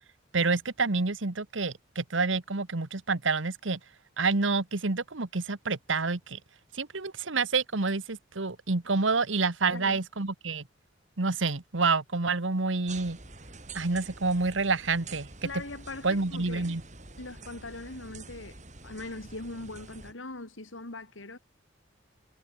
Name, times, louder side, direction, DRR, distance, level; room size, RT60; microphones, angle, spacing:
voice 1, 0.3-3.8 4.2-6.4 6.7-10.6 11.2-13.2 13.7-15.6 16.0-16.8, right 3 dB, 80° right, 1.4 m, -28 dB
sound 1, 12.9-20.1, right 3 dB, 40° right, 8.0 m, -47 dB
voice 2, 15.4-16.7 17.2-21.4, left 2 dB, 85° left, 3.2 m, -41 dB
head